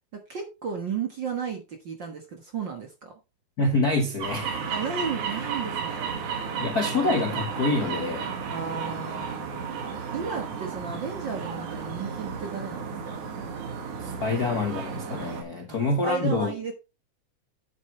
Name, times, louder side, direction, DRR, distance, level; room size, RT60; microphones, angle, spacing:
voice 1, 0.1-3.1 4.7-6.1 8.5-9.5 9.8-13.2 15.7-16.7, right 6 dB, 50° right, 1.6 m, -34 dB
voice 2, 3.6-4.6 6.6-8.3 14.0-16.5, left 2 dB, 50° left, 1.1 m, -26 dB
sound 1, 4.2-15.4, right 6 dB, 70° right, 3.1 m, -33 dB
9.2 x 8.1 x 3.1 m
omnidirectional pair, 3.6 m